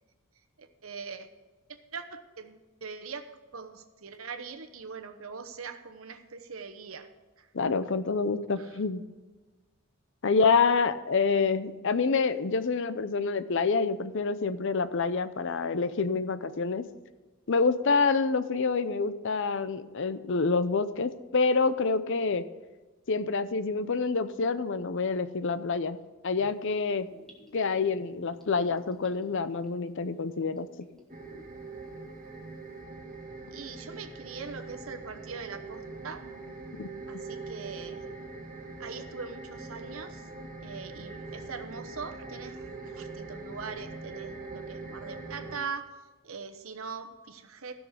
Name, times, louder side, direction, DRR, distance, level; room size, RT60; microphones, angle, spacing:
voice 1, 0.6-1.3 1.9-7.1 7.4-7.5 8.6-8.8 33.5-36.2 37.1-38.0 38.8-40.3 40.6-45.9 46.2-47.7, right 5 dB, 75° right, 7 dB, 1.0 m, -41 dB
voice 2, 7.5-9.0 10.2-16.9 17.5-22.4 23.1-26.0 26.2-27.1 27.5-30.7 36.8-36.9, left 4 dB, 60° left, 13 dB, 0.6 m, -27 dB
Gurgling / Bathtub (filling or washing), 26.4-31.6 31.9-32.0, left 2 dB, ahead, 1.7 m, -54 dB
sound 1, 31.1-45.6, right 3 dB, 40° right, 1.3 m, -42 dB
15.5 x 6.4 x 5.0 m, 1.3 s
head